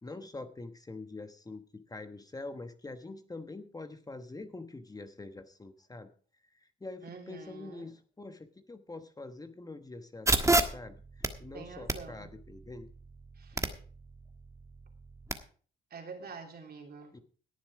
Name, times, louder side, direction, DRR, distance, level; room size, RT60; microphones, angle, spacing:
voice 1, 0.0-6.1 6.5-12.9 17.1-17.2, left 2 dB, 20° left, 8 dB, 1.2 m, -45 dB
voice 2, 7.0-7.9 11.5-12.3 13.3-13.7 15.9-17.1, right 5 dB, 50° right, 3 dB, 3.2 m, -46 dB
sound 1, 10.3-15.3, right 2 dB, 15° right, 1.4 m, -32 dB
17.5 x 7.3 x 4.9 m, 0.43 s
cardioid pair, 90°, 20 cm